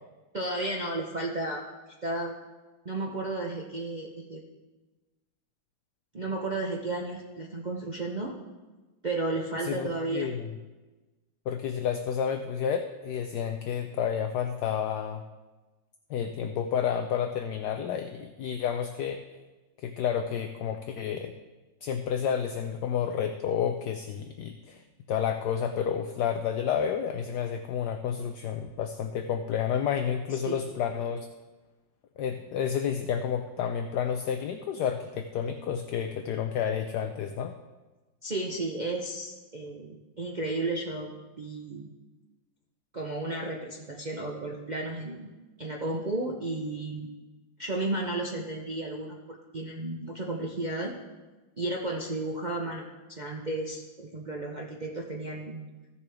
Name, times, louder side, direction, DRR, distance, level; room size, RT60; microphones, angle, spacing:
voice 1, 0.3-1.6 2.0-2.3 2.8-4.4 6.1-8.3 9.0-10.3 30.3-30.6 38.2-41.9 42.9-45.3 45.6-47.1 47.6-50.9 51.6-55.6, right 2 dB, 65° right, -2 dB, 0.4 m, -33 dB
voice 2, 9.6-10.5 11.5-15.2 16.1-19.2 19.8-21.3 21.8-24.8 25.1-31.3 32.2-37.5, left 8 dB, 75° left, 7 dB, 1.0 m, -30 dB
15.0 x 7.0 x 3.4 m, 1.2 s
omnidirectional pair, 2.1 m